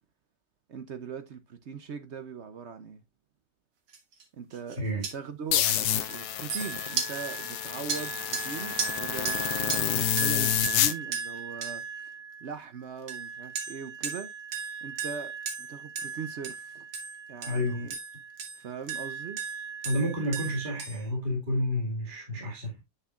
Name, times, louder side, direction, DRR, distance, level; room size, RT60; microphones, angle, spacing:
voice 1, 0.7-3.0 4.3-12.1 12.4-14.3 14.8-15.3 15.6-16.9 17.3-18.0 18.6-19.4, right 6 dB, 60° right, 0.7 m, -40 dB
sound 1, 3.9-4.2 4.5-4.7 5.0-5.1 5.6-12.6 13.1-21.0, right 5 dB, 85° right, 2.1 m, -36 dB
sound 2, 5.5-10.9, left 12 dB, 70° left, 1.1 m, -28 dB
voice 2, 17.4-17.9 19.8-22.8, left 1 dB, 25° right, 2.3 m, -30 dB
8.2 x 6.5 x 2.4 m
omnidirectional pair, 1.9 m